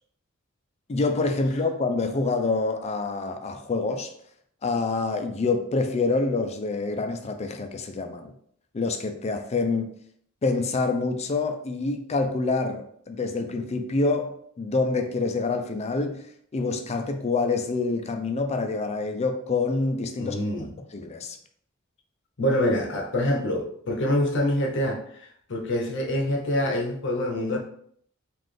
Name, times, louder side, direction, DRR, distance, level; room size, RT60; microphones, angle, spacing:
voice 1, 0.9-4.1 4.6-8.3 8.7-9.9 10.4-21.4, left 3 dB, 30° left, 6 dB, 0.4 m, -27 dB
voice 2, 20.2-20.7 22.4-27.6, left 1 dB, 60° left, 1 dB, 0.7 m, -26 dB
4.0 x 2.4 x 3.2 m, 0.65 s
head